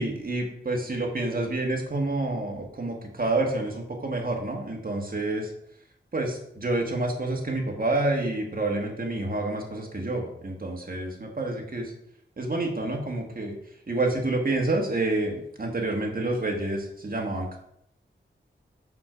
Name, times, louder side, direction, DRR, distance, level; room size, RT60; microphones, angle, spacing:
voice 1, 0.0-5.5 6.1-11.9 12.4-13.6 13.9-17.6, right 2 dB, 45° right, 1 dB, 1.8 m, -28 dB
6.0 x 5.8 x 5.1 m, 0.74 s
wide cardioid pair, 70°, 21 cm